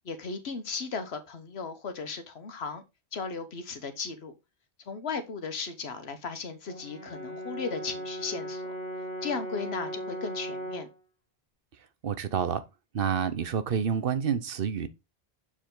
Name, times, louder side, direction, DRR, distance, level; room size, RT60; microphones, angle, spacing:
voice 1, 0.0-2.8 3.1-4.3 4.9-8.7 9.2-10.9, left 5 dB, 85° left, 1.3 m, -36 dB
Brass instrument, 6.7-11.0, right 1 dB, 40° left, 1.9 m, -37 dB
voice 2, 12.0-12.6 12.9-14.9, right 7 dB, 65° right, 1.0 m, -28 dB
7.3 x 4.7 x 3.8 m
omnidirectional pair, 1.1 m